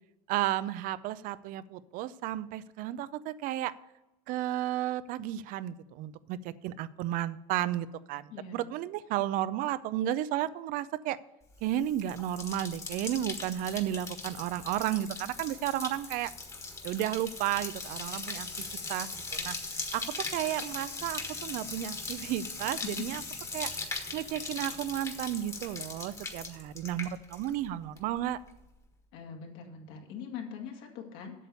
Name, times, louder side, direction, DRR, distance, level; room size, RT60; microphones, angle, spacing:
voice 1, 0.3-3.7 4.3-11.2 11.6-16.3 16.8-18.5 18.9-19.1 19.4-19.6 19.9-23.2 23.5-23.7 24.1-28.4, right 12 dB, 60° right, 16 dB, 0.5 m, -33 dB
voice 2, 8.3-8.7 23.5-23.7 29.1-31.3, left 6 dB, 75° left, 2 dB, 2.2 m, -43 dB
Bathtub (filling or washing), 11.6-27.7 28.0-28.5, left 3 dB, 20° left, 1.4 m, -39 dB
8.4 x 6.8 x 6.9 m, 0.98 s
cardioid pair, 125°, 16 cm